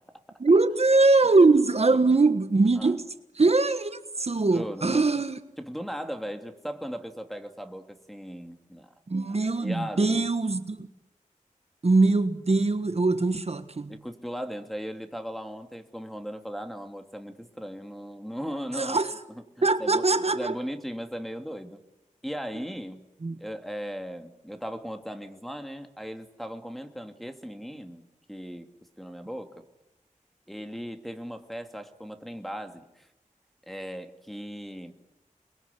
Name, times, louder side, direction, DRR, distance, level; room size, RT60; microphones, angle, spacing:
voice 1, 0.4-3.1 3.3-5.4 9.1-10.9 11.8-14.0 18.7-19.2 19.6-20.6 23.2-23.4, right 3 dB, 50° right, 1.4 m, -22 dB
voice 2, 4.3-5.1 5.6-8.9 9.6-10.3 13.9-19.0 19.6-20.1 20.3-21.8 22.2-23.0 23.4-28.7 29.0-29.6 30.5-33.1 33.7-34.9, equal, ahead, 2.5 m, -37 dB
29.0 x 21.5 x 8.5 m
wide cardioid pair, 80°, 13 cm